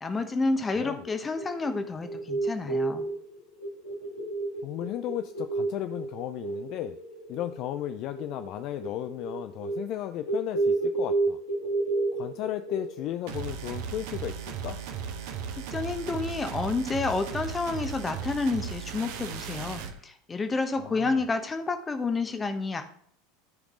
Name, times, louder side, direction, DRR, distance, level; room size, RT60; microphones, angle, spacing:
voice 1, 0.0-3.1 15.6-22.8, left 3 dB, 15° left, 8 dB, 1.0 m, -29 dB
voice 2, 0.7-1.0 4.6-7.0 7.3-11.4 12.1-14.8 20.8-21.3, left 13 dB, 45° left, 10 dB, 0.4 m, -35 dB
sound 1, 1.0-13.1, right 3 dB, 60° left, 1.7 m, -31 dB
sound 2, 13.3-20.0, right 7 dB, 55° right, 0.9 m, -36 dB
12.5 x 5.1 x 3.7 m, 0.63 s
figure-of-eight pair, 80°, 0 cm